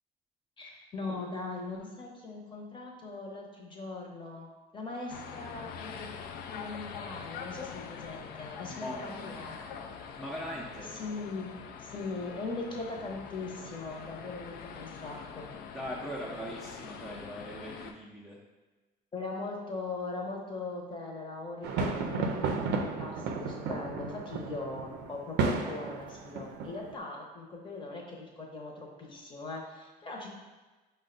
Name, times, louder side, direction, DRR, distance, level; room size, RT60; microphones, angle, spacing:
voice 1, 0.6-4.5 4.7-6.1 6.5-9.6 10.9-11.5 11.8-15.5 19.1-30.3, left 3 dB, 30° left, -1 dB, 0.8 m, -40 dB
sound 1, 5.1-17.9, left 6 dB, 65° left, 0.4 m, -44 dB
voice 2, 8.7-9.4 10.2-11.0 15.7-18.4, equal, ahead, -4 dB, 0.5 m, -40 dB
sound 2, 21.6-27.0, right 4 dB, 85° right, 0.5 m, -33 dB
5.1 x 2.2 x 3.8 m, 1.2 s
cardioid pair, 110°, 17 cm